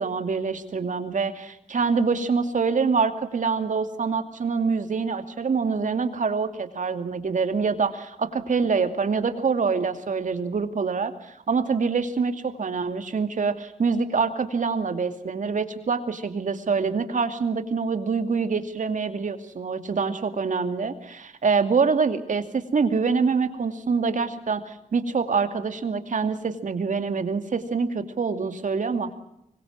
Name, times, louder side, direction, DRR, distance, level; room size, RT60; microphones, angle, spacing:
voice 1, 0.0-29.1, right 5 dB, 60° right, 9 dB, 2.5 m, -25 dB
25.0 x 23.0 x 7.5 m, 0.81 s
wide cardioid pair, 95°, 15 cm